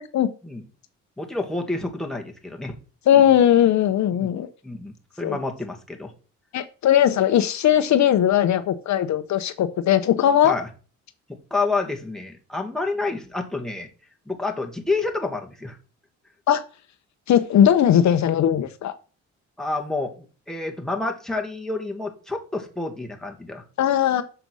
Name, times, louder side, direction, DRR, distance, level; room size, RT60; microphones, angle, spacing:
voice 1, 1.2-2.8 4.2-4.3 4.6-6.1 10.4-10.7 11.3-13.9 14.3-15.8 19.6-20.1 20.5-23.6, left 3 dB, ahead, 1 dB, 2.0 m, -29 dB
voice 2, 3.1-4.5 5.2-5.4 6.5-10.5 16.5-16.6 17.3-19.0 23.8-24.2, left 10 dB, 65° left, 10 dB, 0.9 m, -19 dB
6.8 x 5.3 x 6.2 m, 0.38 s
cardioid pair, 90°, 30 cm